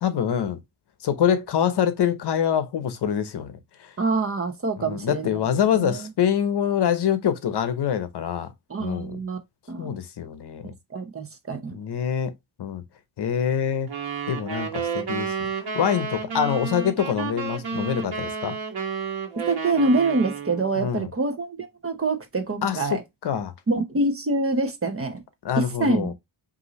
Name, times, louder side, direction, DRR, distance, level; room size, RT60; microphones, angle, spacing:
voice 1, 0.0-0.6 1.0-3.9 4.8-8.5 8.8-9.2 9.8-10.7 11.7-12.3 12.6-12.8 13.2-13.9 14.3-15.5 15.7-18.6 20.8-21.1 22.6-23.5 25.4-26.1, left 8 dB, 55° left, 0.8 m, -25 dB
voice 2, 4.0-5.4 5.8-6.1 8.7-9.4 9.7-9.9 10.6-11.7 19.5-23.0 23.7-25.2 25.6-26.1, right 2 dB, 30° right, 0.9 m, -25 dB
sound 1, 13.9-20.7, right 5 dB, 50° right, 1.4 m, -31 dB
5.3 x 2.8 x 3.1 m
wide cardioid pair, 135°, 48 cm